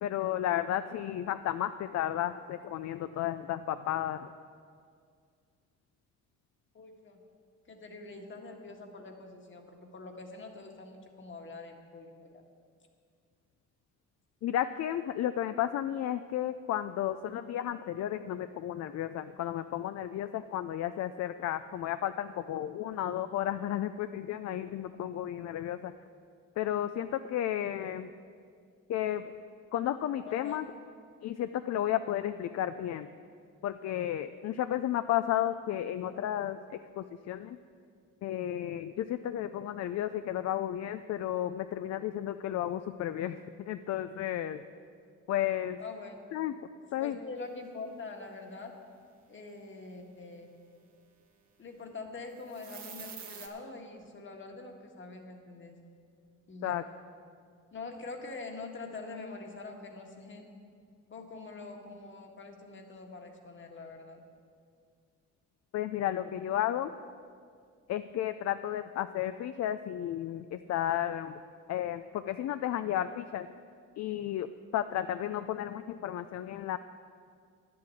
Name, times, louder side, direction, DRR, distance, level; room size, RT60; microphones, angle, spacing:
voice 1, 0.0-4.3 14.4-25.9 26.6-28.1 28.9-29.2 29.7-30.6 31.2-33.1 33.6-36.6 37.0-37.6 38.2-44.6 45.3-45.8 46.3-46.5 46.9-47.2 56.6-56.8 65.7-66.9 67.9-71.3 71.7-73.5 74.0-74.5 74.7-76.8, left 11 dB, 60° left, 11 dB, 0.5 m, -33 dB
voice 2, 6.7-7.2 7.7-12.4 30.2-30.7 45.8-46.3 47.0-48.7 49.3-50.5 51.6-55.8 56.5-56.8 57.7-60.5 61.1-64.2, left 3 dB, 40° left, 3 dB, 1.6 m, -44 dB
sound 1, 52.4-53.5, right 7 dB, 65° right, 1.7 m, -45 dB
10.5 x 7.7 x 8.4 m, 2.2 s
cardioid pair, 90°, 30 cm